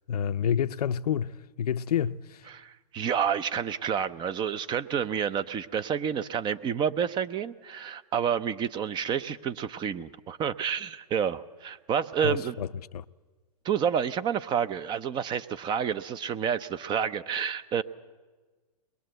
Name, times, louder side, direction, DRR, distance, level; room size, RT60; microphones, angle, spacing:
voice 1, 0.1-2.5 12.2-13.0, left 8 dB, 75° left, 0.6 m, -29 dB
voice 2, 2.5-12.5 13.6-17.8, right 8 dB, 25° right, 0.6 m, -29 dB
21.5 x 21.5 x 7.9 m
hypercardioid pair, 125°, 20 cm